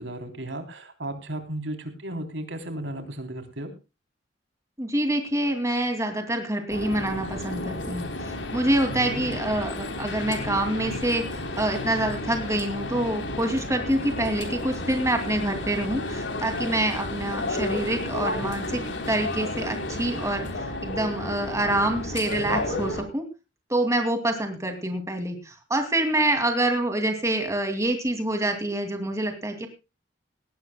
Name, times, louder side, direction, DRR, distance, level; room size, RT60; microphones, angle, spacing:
voice 1, 0.0-3.7 8.9-9.3, right 1 dB, 75° right, 6 dB, 3.3 m, -35 dB
voice 2, 4.8-8.1 8.5-18.8 19.1-23.2 23.7-29.7, right 1 dB, 15° right, 5 dB, 2.5 m, -26 dB
sound 1, 6.7-23.0, left 2 dB, 75° left, 3.5 m, -32 dB
18.5 x 17.0 x 2.2 m, 0.29 s
head